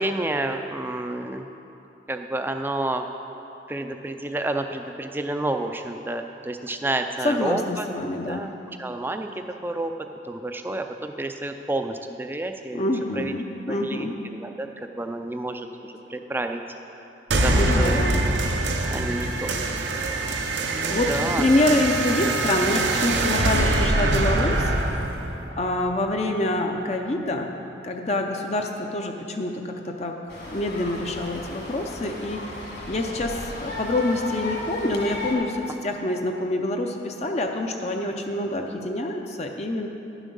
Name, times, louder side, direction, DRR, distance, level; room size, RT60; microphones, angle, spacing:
voice 1, 0.0-1.5 2.1-3.0 3.7-7.9 8.3-8.5 8.8-9.3 9.6-9.9 10.2-13.3 13.7-14.1 14.3-14.7 15.0-15.7 16.1-16.6 17.4-18.0 18.9-19.5 20.7-21.5, right 2 dB, 10° right, 6 dB, 0.4 m, -29 dB
voice 2, 7.2-8.5 12.7-14.2 17.5-18.2 20.9-24.7 25.6-27.5 27.8-30.2 30.5-32.6 32.9-39.9, left 1 dB, 35° left, 3 dB, 0.5 m, -26 dB
sound 1, 17.3-26.3, right 2 dB, 80° right, 0.8 m, -24 dB
sound 2, 30.3-35.3, left 2 dB, 60° left, 1.9 m, -35 dB
11.5 x 7.2 x 5.4 m, 2.9 s
head